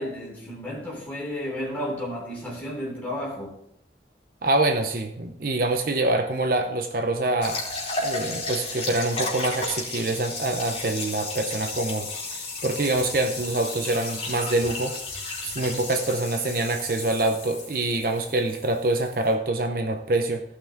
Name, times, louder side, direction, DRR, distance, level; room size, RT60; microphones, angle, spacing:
voice 1, 0.0-3.5, equal, 10° left, 3.4 m, -32 dB
voice 2, 4.4-7.6 8.0-12.1 12.6-14.9 15.4-20.4, right 2 dB, 55° right, 0.7 m, -25 dB
sound 1, 7.4-19.3, left 3 dB, 35° left, 3.2 m, -33 dB
16.0 x 5.8 x 3.6 m
head